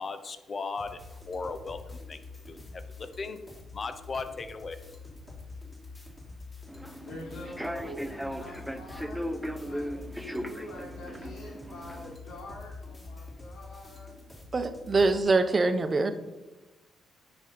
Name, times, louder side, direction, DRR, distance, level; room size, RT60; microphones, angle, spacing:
voice 1, 0.0-2.2 2.5-3.4 3.7-4.8, left 4 dB, 40° left, 10 dB, 0.8 m, -37 dB
sound 1, 0.8-15.2, left 3 dB, 20° left, 2.6 m, -46 dB
Human voice / Subway metro underground, 6.7-12.1, equal, ahead, 0.6 m, -37 dB
voice 2, 7.0-14.2, left 1 dB, 70° left, -2 dB, 3.1 m, -45 dB
voice 3, 14.5-16.1, right 3 dB, 30° right, 8 dB, 0.9 m, -24 dB
9.6 x 5.3 x 5.2 m, 1.1 s
cardioid pair, 90°, 0 cm